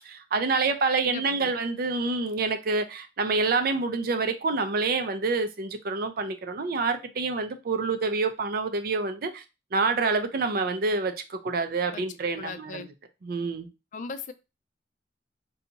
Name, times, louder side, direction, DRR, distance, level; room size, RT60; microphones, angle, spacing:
voice 1, 0.0-9.4 9.7-12.8 13.2-13.7, right 4 dB, 55° right, 0.5 m, -27 dB
voice 2, 1.0-1.5 11.9-12.0 12.4-12.9 13.9-14.3, left 4 dB, 45° left, 0.3 m, -38 dB
2.7 x 2.3 x 3.9 m
head